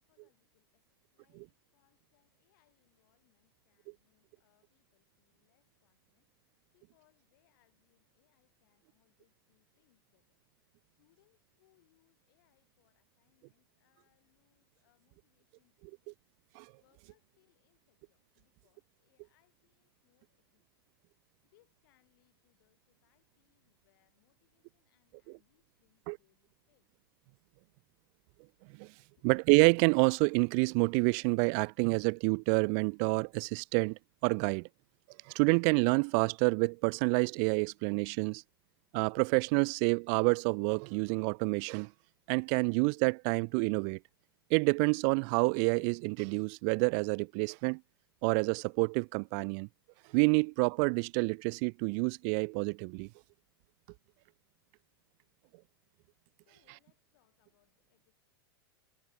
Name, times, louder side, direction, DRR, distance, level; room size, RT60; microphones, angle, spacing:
voice 1, 0.0-10.4 10.9-16.2 16.8-20.9 21.4-26.9 29.0-29.3 56.3-58.1, left 19 dB, 55° left, 7.7 m, -75 dB
voice 2, 29.2-34.7 35.3-38.4 38.9-41.9 42.3-44.0 44.5-47.8 48.2-49.7 50.1-53.1, right 40 dB or more, 45° right, 0.4 m, -28 dB
figure-of-eight pair, 95°, 13 cm